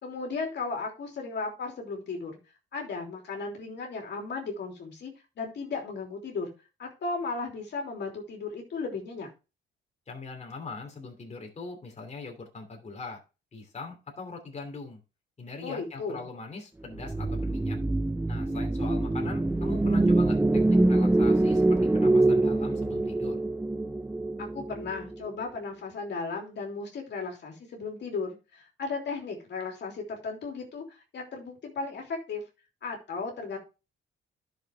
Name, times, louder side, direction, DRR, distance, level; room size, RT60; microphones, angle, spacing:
voice 1, 0.0-2.4 2.7-6.5 6.8-9.3 15.6-16.2 24.4-32.4 32.8-33.6, left 4 dB, 60° left, 1 dB, 3.2 m, -35 dB
voice 2, 10.1-13.2 13.5-15.0 15.4-17.8 18.3-23.4, left 4 dB, 35° left, 2 dB, 2.8 m, -41 dB
sound 1, 17.0-25.3, right 2 dB, 10° right, 0.6 m, -25 dB
10.5 x 6.7 x 3.5 m, 0.29 s
cardioid pair, 90°, 20 cm